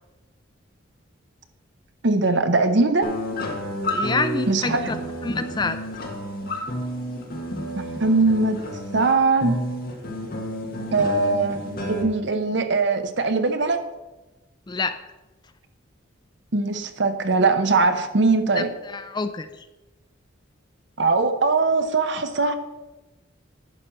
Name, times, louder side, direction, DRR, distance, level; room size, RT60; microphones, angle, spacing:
voice 1, 2.0-3.1 4.5-4.9 7.8-8.6 8.9-9.6 10.9-13.9 16.5-18.7 21.0-22.5, right 3 dB, 60° right, 9 dB, 0.7 m, -21 dB
sound 1, 3.0-12.0, equal, 45° left, 1.5 m, -30 dB
voice 2, 3.9-5.0 5.2-5.8 14.7-15.0 18.6-19.5, left 4 dB, 20° left, 10 dB, 0.4 m, -27 dB
11.0 x 4.5 x 6.3 m, 1.1 s
head